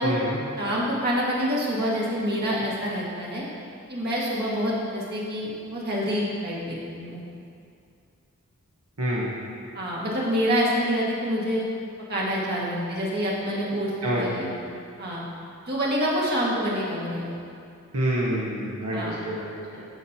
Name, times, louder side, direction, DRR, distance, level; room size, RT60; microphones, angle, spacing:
voice 1, 0.0-0.4 9.0-9.3 14.0-14.2 17.9-19.8, right 1 dB, 70° right, -6 dB, 1.2 m, -27 dB
voice 2, 0.5-3.4 3.9-7.2 9.7-11.6 12.1-14.5 15.0-15.2 15.6-17.3 18.9-19.2, equal, 45° right, -5 dB, 1.7 m, -27 dB
15.0 x 5.9 x 2.8 m, 2.5 s
head